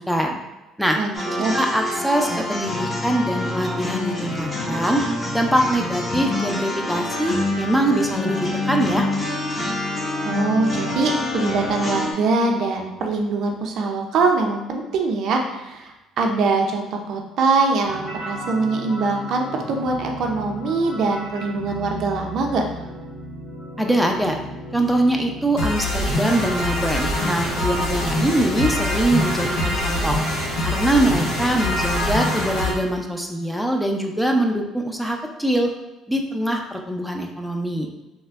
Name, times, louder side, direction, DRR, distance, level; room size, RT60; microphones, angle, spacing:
voice 1, 0.1-0.4 0.8-1.0 1.3-5.0 5.3-8.4 8.7-9.1 23.8-24.4 24.7-30.2 30.6-35.7 36.1-37.9, right 1 dB, ahead, 2 dB, 0.5 m, -23 dB
voice 2, 1.0-1.5 10.2-22.6, right 3 dB, 65° right, 2 dB, 0.5 m, -23 dB
sound 1, 1.1-12.1, left 2 dB, 30° left, 1.2 m, -26 dB
sound 2, 17.8-32.7, left 1 dB, 85° left, 1.0 m, -27 dB
3.2 x 2.1 x 3.4 m, 1.0 s
supercardioid pair, 75°, 0 cm